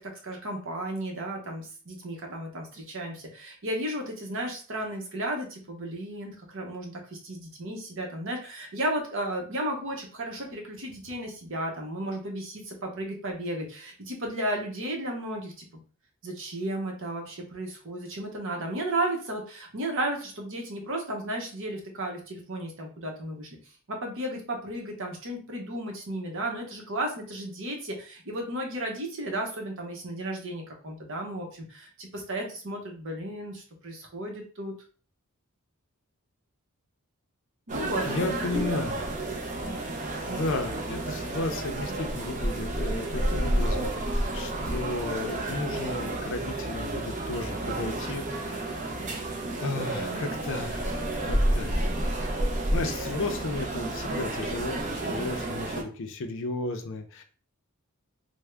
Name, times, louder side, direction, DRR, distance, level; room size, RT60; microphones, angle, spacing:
voice 1, 0.0-15.8 16.2-23.5 23.9-34.7 37.7-38.3 38.7-38.9, right 1 dB, 60° right, 1 dB, 0.9 m, -34 dB
sound 1, 37.7-55.8, right 1 dB, 35° right, 0.6 m, -30 dB
voice 2, 38.0-39.0 40.3-49.3 49.6-51.9 52.7-57.2, left 2 dB, 60° left, 6 dB, 0.5 m, -34 dB
3.5 x 2.1 x 3.3 m, 0.40 s
head